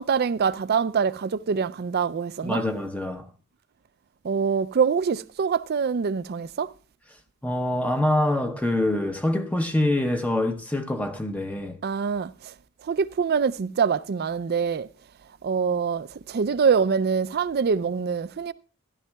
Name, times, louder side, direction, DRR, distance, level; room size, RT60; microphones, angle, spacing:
voice 1, 0.0-2.6 4.2-6.7 11.8-12.5 12.8-14.9 15.4-18.5, right 6 dB, 50° right, 0.4 m, -24 dB
voice 2, 2.4-3.3 7.4-11.8, left 1 dB, 5° left, 0.7 m, -25 dB
14.5 x 11.5 x 2.3 m
head